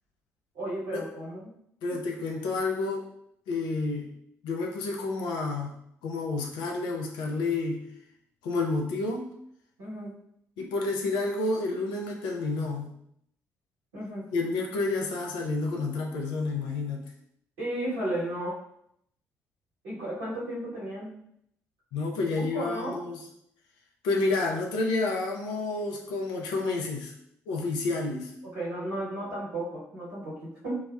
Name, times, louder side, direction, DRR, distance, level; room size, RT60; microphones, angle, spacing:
voice 1, 0.5-1.5 9.8-10.1 13.9-14.3 17.6-18.5 19.8-21.1 22.3-23.0 28.4-30.8, right 1 dB, 70° right, -9 dB, 1.3 m, -34 dB
voice 2, 1.8-3.0 3.5-4.1 4.4-5.7 6.0-7.8 8.4-9.3 10.6-12.9 14.3-17.0 21.9-23.2 24.0-27.1 27.5-28.3, left 3 dB, 65° left, 0 dB, 0.5 m, -29 dB
2.8 x 2.1 x 2.4 m, 0.72 s
figure-of-eight pair, 40°, 8 cm